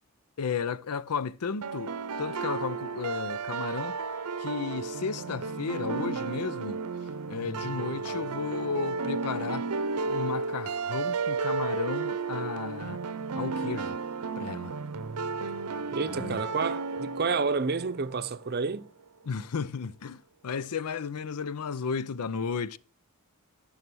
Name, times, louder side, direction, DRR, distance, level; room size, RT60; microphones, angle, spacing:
voice 1, 0.4-4.0 4.4-6.8 7.3-9.7 10.0-13.0 13.3-14.0 14.4-14.7 16.1-16.4 19.3-22.8, left 5 dB, 90° left, 0.6 m, -34 dB
sound 1, 1.6-18.5, right 4 dB, 90° right, 0.7 m, -33 dB
voice 2, 15.9-18.9, right 4 dB, 45° right, 0.7 m, -29 dB
14.0 x 5.6 x 6.2 m
head